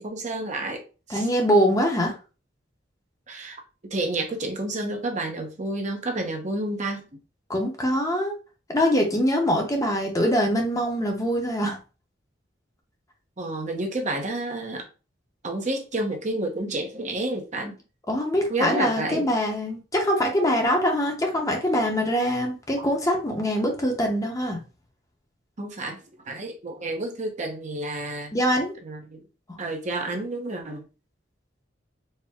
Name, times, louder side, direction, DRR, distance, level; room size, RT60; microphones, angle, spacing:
voice 1, 0.0-1.3 3.3-3.6 3.9-7.1 13.4-14.9 15.4-17.8 18.5-19.3 22.8-22.9 25.6-28.3 28.8-29.2 29.6-30.8, right 2 dB, 40° right, 0.8 m, -30 dB
voice 2, 1.1-2.1 7.5-8.3 8.7-11.8 18.1-24.6 28.3-28.7, equal, 20° left, 0.8 m, -23 dB
4.3 x 2.1 x 3.5 m
head